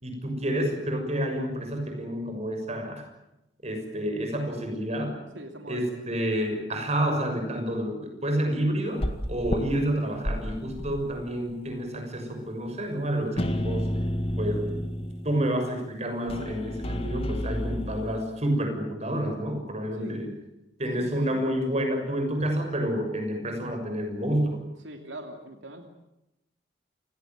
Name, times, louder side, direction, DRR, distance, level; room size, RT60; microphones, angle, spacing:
voice 1, 0.0-3.0 3.6-5.2 5.7-13.9 14.4-14.8 15.2-20.3 20.8-24.6, right 1 dB, 35° right, 5 dB, 6.5 m, -29 dB
voice 2, 5.3-6.0 20.0-20.2 21.0-21.4 24.8-25.9, right 1 dB, 90° right, 5 dB, 2.9 m, -41 dB
sound 1, 9.0-9.6 10.1-11.1 11.5-11.6 13.4-15.5 16.3-18.2, equal, 35° left, 2.0 m, -30 dB
29.0 x 17.0 x 9.3 m, 0.89 s
head